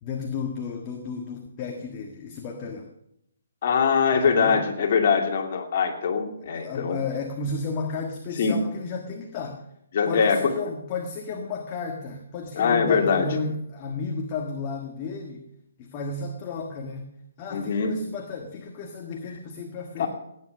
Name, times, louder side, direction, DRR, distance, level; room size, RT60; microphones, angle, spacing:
voice 1, 0.0-2.9 4.3-4.6 6.4-9.7 10.0-15.4 15.8-17.1 17.4-20.1, left 4 dB, 30° left, 3 dB, 1.5 m, -33 dB
voice 2, 3.6-7.0 8.4-8.6 9.9-10.5 12.5-13.3 17.5-17.9 20.0-20.1, left 6 dB, 45° left, 2 dB, 2.7 m, -22 dB
16.5 x 9.9 x 6.7 m, 0.78 s
hypercardioid pair, 155°, 0 cm